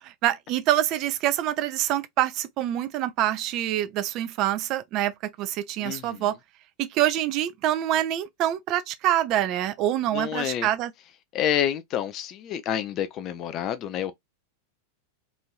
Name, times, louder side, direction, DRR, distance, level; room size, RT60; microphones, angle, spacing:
voice 1, 0.0-5.1 5.4-6.4 6.8-10.9, right 12 dB, 40° right, 0.4 m, -26 dB
voice 2, 5.8-6.2 10.1-10.7 11.3-14.1, left 10 dB, 35° left, 0.3 m, -28 dB
3.0 x 2.6 x 2.3 m
figure-of-eight pair, 90°, 0 cm